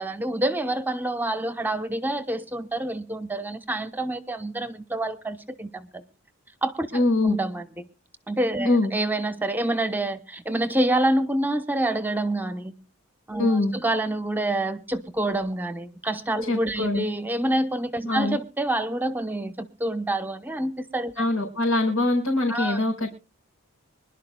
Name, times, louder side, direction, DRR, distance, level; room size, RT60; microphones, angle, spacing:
voice 1, 0.0-6.0 6.6-7.7 8.3-12.7 13.3-19.5 19.8-21.1 22.5-22.8, right 1 dB, 10° right, 10 dB, 0.9 m, -27 dB
voice 2, 6.9-7.4 8.6-8.9 13.4-13.7 16.5-17.0 18.0-18.4 21.2-23.1, left 2 dB, 80° left, -1 dB, 4.9 m, -23 dB
25.5 x 11.5 x 2.2 m, 0.32 s
head